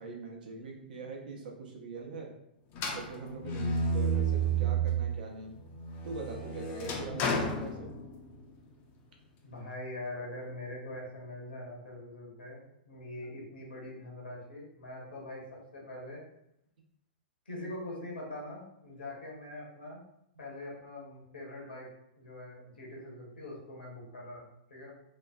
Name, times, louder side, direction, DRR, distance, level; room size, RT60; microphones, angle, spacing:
voice 1, 0.0-2.3 2.9-5.6 6.0-7.9, right 3 dB, 60° right, 0 dB, 0.6 m, -42 dB
sound 1, 2.7-5.2 5.6-8.4, right 3 dB, 35° left, 0.4 m, -31 dB
voice 2, 9.4-15.4 15.7-16.2 17.5-20.0 20.4-21.9 22.2-24.4 24.7-24.9, left 1 dB, 80° left, -3 dB, 1.0 m, -43 dB
3.1 x 2.0 x 2.3 m, 0.79 s
figure-of-eight pair, 110°, 5 cm